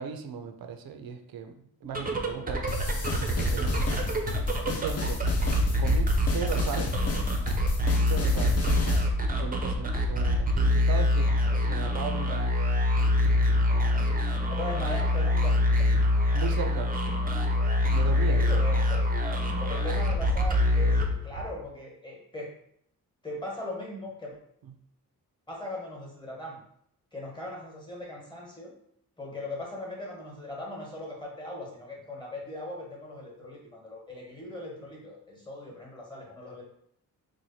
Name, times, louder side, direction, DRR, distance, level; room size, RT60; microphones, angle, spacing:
voice 1, 0.0-1.5 1.8-3.8 4.7-5.3 5.8-6.9 8.0-8.6 9.3-11.3 11.7-12.5 13.6-14.2 16.3-17.0 17.8-18.4, right 6 dB, 80° right, 7 dB, 0.5 m, -37 dB
sound 1, 1.8-21.6, left 1 dB, 25° right, 0.6 m, -25 dB
sound 2, 2.7-9.1, left 2 dB, 45° left, 0.6 m, -32 dB
voice 2, 14.5-16.2 18.3-19.1 19.5-22.6 23.2-24.4 25.5-26.6 27.1-28.7 29.2-36.6, left 1 dB, 10° left, -2 dB, 1.2 m, -39 dB
3.1 x 2.1 x 4.0 m, 0.70 s
cardioid pair, 80°, 36 cm